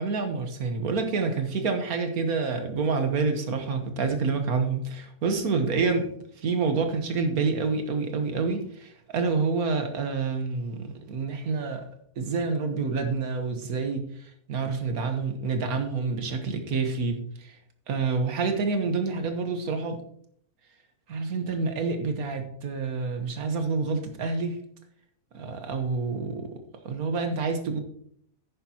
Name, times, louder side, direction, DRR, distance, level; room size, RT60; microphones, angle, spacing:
voice 1, 0.0-6.1 6.4-11.9 12.2-17.6 17.9-20.0 21.1-24.6 25.3-26.5 26.8-27.8, right 4 dB, 70° right, 6 dB, 1.7 m, -28 dB
10.5 x 9.4 x 2.9 m, 0.66 s
omnidirectional pair, 1.6 m